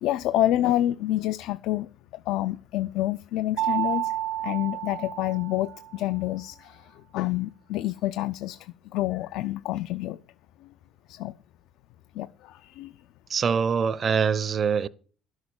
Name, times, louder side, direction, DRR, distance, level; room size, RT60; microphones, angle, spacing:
voice 1, 0.0-10.2 10.6-10.7 11.1-11.3 12.1-13.0, left 14 dB, 75° left, 0.5 m, -28 dB
Mallet percussion, 3.6-6.1, right 13 dB, 75° right, 0.9 m, -30 dB
voice 2, 13.3-14.9, right 6 dB, 30° right, 0.6 m, -24 dB
12.0 x 6.4 x 7.1 m
cardioid pair, 175°, 0 cm